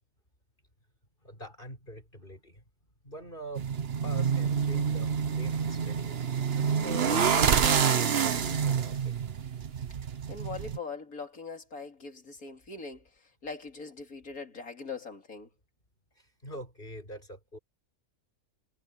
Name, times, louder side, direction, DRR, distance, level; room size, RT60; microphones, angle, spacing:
voice 1, 1.2-2.6 3.0-3.6 4.0-6.2 6.5-9.1 16.4-17.6, right 1 dB, 35° left, 6.1 m, -44 dB
sound 1, 3.6-10.8, right 7 dB, 50° right, 1.1 m, -27 dB
voice 2, 10.3-13.0 13.4-15.5, left 4 dB, 75° left, 3.4 m, -41 dB
omnidirectional pair, 1.5 m